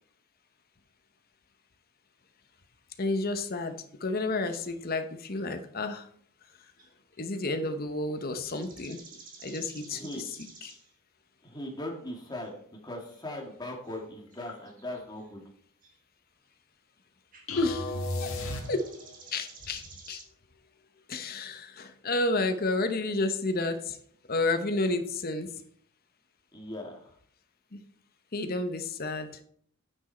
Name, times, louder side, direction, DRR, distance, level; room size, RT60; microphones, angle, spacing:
voice 1, 3.0-6.1 7.2-9.0 9.4-10.0 10.6-10.7 17.6-18.3 18.7-18.9 19.3-20.2 21.1-24.0 24.3-25.5 27.7-27.8 28.3-29.3, left 2 dB, 45° left, 7 dB, 0.9 m, -31 dB
sound 1, 4.5-4.6 6.4-6.5 6.8-6.9 8.4-10.9 12.3-12.5 13.1-15.4 15.8-15.9 17.3-17.5 18.3-20.2, right 4 dB, 40° right, 1.6 m, -52 dB
voice 2, 9.9-10.3 11.4-15.4 26.5-27.1, left 1 dB, 20° left, 1 dB, 1.8 m, -39 dB
sound 2, 14.2-14.7 17.4-17.8, left 5 dB, 90° left, 1.1 m, -48 dB
sound 3, 17.5-19.2, left 2 dB, 70° left, 1.7 m, -34 dB
9.2 x 6.2 x 4.4 m, 0.63 s
head